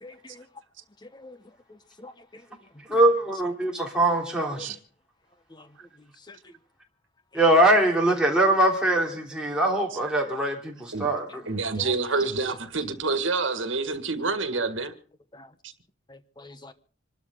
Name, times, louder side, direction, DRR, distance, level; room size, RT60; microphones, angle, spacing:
voice 1, 0.0-0.4 1.1-1.4 2.0-2.4 2.9-3.0 4.6-4.7 5.5-5.7 6.3-6.4 11.8-11.9 13.0-13.1 15.3-15.5 16.1-16.7, left 2 dB, 20° left, 1.0 m, -44 dB
voice 2, 2.9-4.7 7.3-11.4, right 1 dB, 5° right, 3.0 m, -22 dB
voice 3, 11.4-14.9, right 3 dB, 75° right, 1.8 m, -27 dB
26.5 x 12.5 x 3.8 m
head